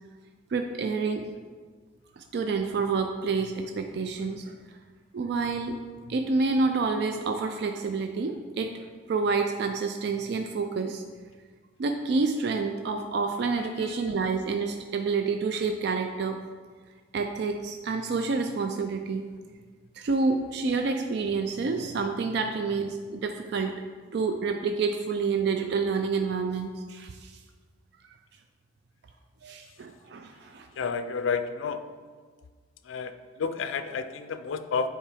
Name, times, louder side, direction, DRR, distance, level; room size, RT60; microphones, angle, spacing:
voice 1, 0.5-1.2 2.2-4.6 5.1-5.8 6.1-8.7 9.1-11.0 11.8-16.4 17.1-19.2 20.0-23.7 24.1-27.3 29.4-30.7, right 4 dB, 55° right, 5 dB, 0.3 m, -28 dB
voice 2, 13.6-14.0 30.8-31.8 32.8-34.9, left 5 dB, 80° left, 10 dB, 0.4 m, -31 dB
7.3 x 4.5 x 3.4 m, 1.5 s
head